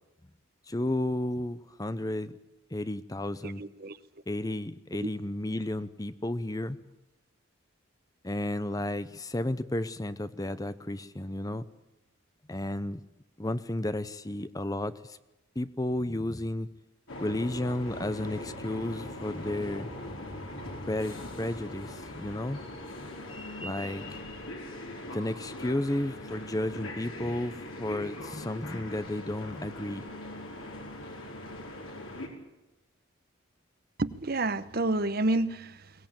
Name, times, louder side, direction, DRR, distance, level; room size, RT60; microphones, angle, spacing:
voice 1, 0.7-2.4 2.7-3.6 4.3-6.8 8.2-11.7 12.5-13.0 13.4-15.2 15.6-16.7 17.2-19.9 20.9-22.6 23.6-24.1 25.1-30.0, left 1 dB, 20° left, 0.7 m, -32 dB
voice 2, 3.4-4.0 5.0-5.1 34.0-35.9, right 2 dB, 50° right, 1.0 m, -29 dB
sound 1, 17.1-32.3, left 1 dB, 85° left, 4.9 m, -41 dB
22.5 x 18.5 x 8.9 m
head